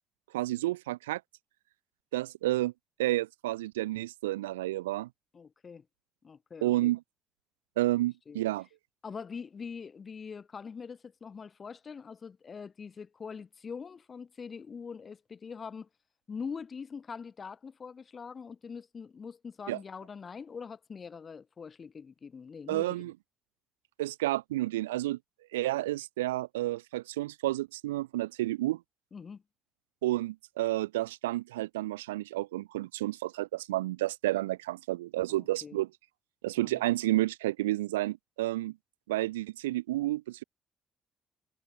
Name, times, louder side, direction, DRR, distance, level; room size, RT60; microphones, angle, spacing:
voice 1, 0.3-1.2 2.1-2.7 3.0-5.1 6.6-7.0 7.8-8.7 19.7-19.8 22.7-23.1 24.0-25.2 25.5-28.8 30.0-35.9 36.4-38.8 39.1-40.4, right 16 dB, 75° right, 0.5 m, -30 dB
voice 2, 5.3-5.8 6.2-6.9 8.3-8.4 9.0-15.9 16.3-22.9 29.1-29.4 35.3-35.8 36.6-36.7, left 6 dB, 40° left, 4.3 m, -43 dB
figure-of-eight pair, 45°, 0 cm